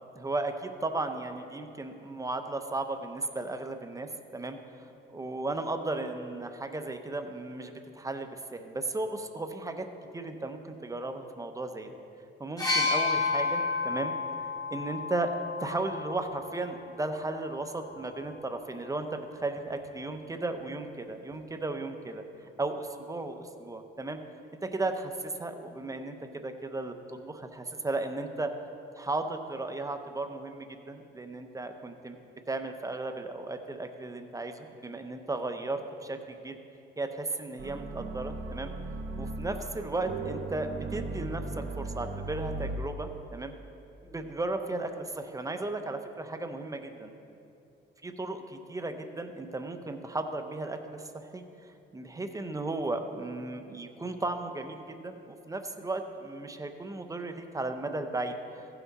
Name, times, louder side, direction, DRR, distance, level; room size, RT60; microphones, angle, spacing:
voice 1, 0.2-11.9 12.4-14.1 14.7-22.2 22.6-24.2 24.6-28.5 29.0-32.2 32.5-36.6 37.0-38.7 39.2-43.5 44.0-47.1 48.0-51.4 51.9-58.7, right 2 dB, 15° right, 6 dB, 0.7 m, -35 dB
sound 1, 12.6-16.4 17.4-17.6, left 4 dB, 20° left, 2.1 m, -30 dB
sound 2, 37.6-42.8, right 2 dB, 90° right, 1.0 m, -37 dB
15.5 x 5.9 x 4.1 m, 2.8 s
cardioid pair, 90°, 20 cm